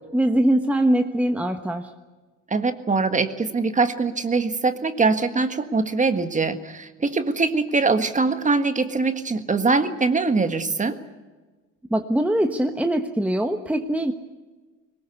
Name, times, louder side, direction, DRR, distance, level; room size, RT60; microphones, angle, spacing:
voice 1, 0.1-1.9 11.9-14.1, right 1 dB, 5° right, 5 dB, 1.3 m, -22 dB
voice 2, 2.5-11.0, right 4 dB, 20° right, 9 dB, 1.6 m, -22 dB
22.0 x 20.0 x 8.2 m, 1.3 s
cardioid pair, 115°, 33 cm